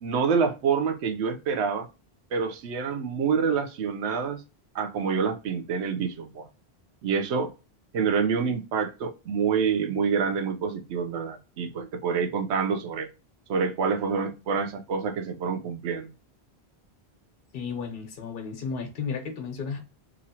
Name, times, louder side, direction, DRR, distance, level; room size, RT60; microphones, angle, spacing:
voice 1, 0.0-1.9 2.3-4.4 4.7-6.5 7.0-7.5 7.9-13.1 13.5-16.1, right 6 dB, 85° right, 0.9 m, -27 dB
voice 2, 17.5-19.8, left 5 dB, 60° left, 1.0 m, -33 dB
3.0 x 2.5 x 2.8 m
omnidirectional pair, 1.1 m